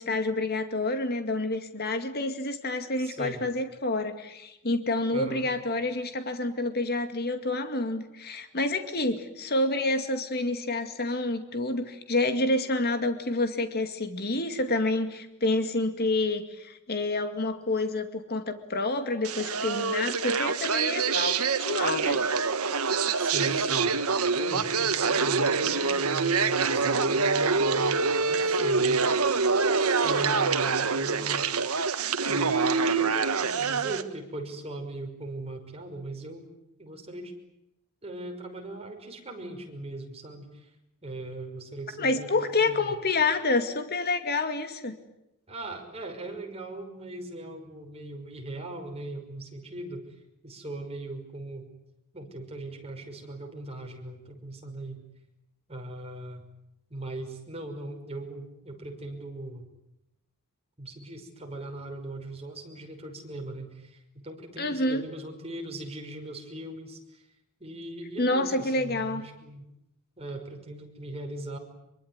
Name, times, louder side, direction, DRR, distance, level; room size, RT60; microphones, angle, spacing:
voice 1, 0.0-22.2 42.0-44.9 64.6-65.0 68.2-69.2, left 2 dB, 45° left, 7 dB, 2.3 m, -28 dB
voice 2, 3.0-3.5 5.1-5.5 23.2-24.1 24.3-29.1 30.0-31.5 32.2-36.4 36.8-37.3 38.0-40.7 41.0-43.0 45.5-50.0 50.4-51.7 52.1-55.0 55.7-56.4 56.9-59.7 60.8-67.2 67.6-69.7 70.2-71.6, right 2 dB, 30° right, 2 dB, 5.7 m, -39 dB
sound 1, 19.2-34.0, right 4 dB, 90° right, 1.6 m, -25 dB
25.0 x 24.0 x 9.8 m, 0.85 s
head